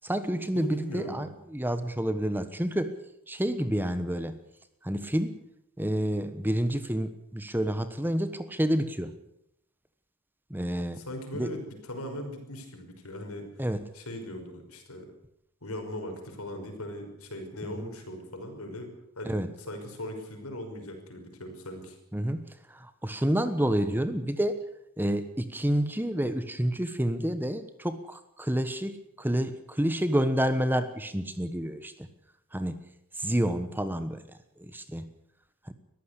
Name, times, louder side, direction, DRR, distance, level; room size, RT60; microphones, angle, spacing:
voice 1, 0.0-2.9 3.3-4.3 4.8-5.4 5.8-9.1 10.5-11.0 11.3-11.5 13.6-13.8 17.6-17.9 19.2-19.5 22.1-24.6 25.0-32.1 32.5-32.8 33.2-34.2 34.6-35.1 35.7-35.8, equal, 10° right, 11 dB, 1.2 m, -29 dB
voice 2, 0.5-1.2 11.0-13.5 13.9-15.1 15.6-18.9 19.2-22.0, left 1 dB, 75° left, 5 dB, 5.6 m, -39 dB
21.5 x 15.0 x 8.4 m, 0.76 s
head